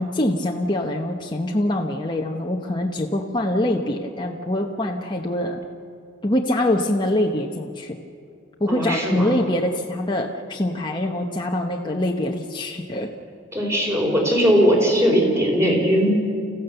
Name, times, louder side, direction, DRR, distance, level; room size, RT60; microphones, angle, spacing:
voice 1, 0.0-5.6 6.2-8.0 8.6-13.1, left 1 dB, 25° left, 0 dB, 1.0 m, -24 dB
voice 2, 8.7-9.3 13.5-16.1, equal, 15° right, -1 dB, 4.7 m, -19 dB
30.0 x 15.5 x 6.9 m, 2.4 s
head